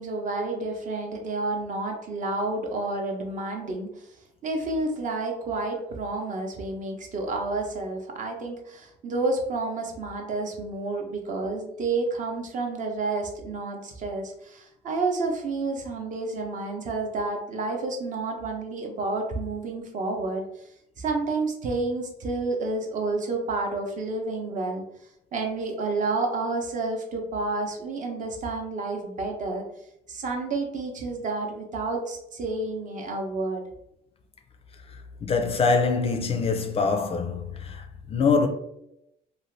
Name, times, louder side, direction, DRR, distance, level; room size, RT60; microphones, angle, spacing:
voice 1, 0.0-4.1 4.4-20.5 21.0-24.8 25.3-29.6 30.1-33.7, right 3 dB, 50° right, 0.7 m, -30 dB
voice 2, 35.2-38.5, left 4 dB, 35° left, 0.4 m, -24 dB
2.7 x 2.4 x 3.2 m
cardioid pair, 110°, 17 cm